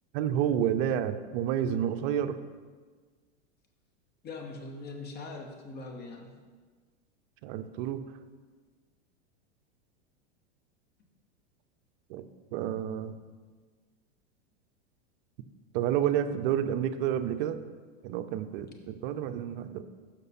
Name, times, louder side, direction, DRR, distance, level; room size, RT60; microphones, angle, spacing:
voice 1, 0.1-2.4 7.4-8.0 12.1-12.3 12.5-13.2 15.7-17.6 18.0-19.8, right 10 dB, 55° right, 10 dB, 0.5 m, -29 dB
voice 2, 4.2-6.3, left 3 dB, 30° left, 3 dB, 0.9 m, -41 dB
6.7 x 5.9 x 4.1 m, 1.5 s
hypercardioid pair, 120°, 33 cm